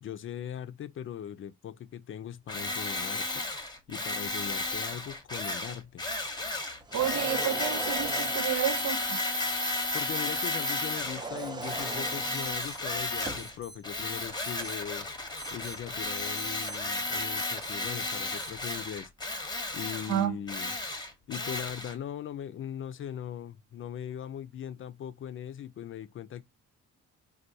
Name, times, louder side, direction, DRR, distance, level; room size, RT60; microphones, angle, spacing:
voice 1, 0.0-3.4 3.9-6.0 9.9-15.2 15.5-19.1 19.7-20.7 21.3-26.4, left 9 dB, 45° left, 0.4 m, -40 dB
Tools, 2.5-11.3 11.6-13.6 13.8-21.9, left 2 dB, 15° left, 0.8 m, -33 dB
sound 1, 6.8-8.7 10.9-13.6, right 4 dB, 15° right, 0.5 m, -39 dB
voice 2, 6.9-9.2 20.1-20.4, right 10 dB, 75° right, 0.6 m, -30 dB
Alarm, 9.6-9.8 10.4-10.8 11.4-11.8 12.4-12.8 13.4-13.9 14.4-14.8 15.4-15.8 16.4-16.8 17.4-17.9 18.4-18.9 20.6-20.7, right 2 dB, 50° right, 0.8 m, -49 dB
3.3 x 2.3 x 2.6 m
cardioid pair, 90°, 30 cm